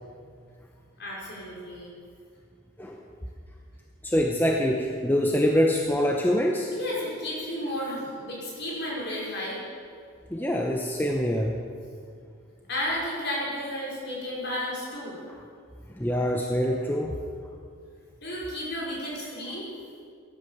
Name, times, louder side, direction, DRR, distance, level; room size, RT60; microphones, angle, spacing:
voice 1, 1.0-1.9 6.7-9.6 10.4-10.5 12.7-15.2 18.2-19.7, left 1 dB, 50° left, -5 dB, 5.3 m, -33 dB
voice 2, 4.0-6.7 10.3-11.6 16.0-17.2, equal, 10° left, 1 dB, 0.8 m, -25 dB
17.0 x 11.0 x 7.2 m, 2.2 s
head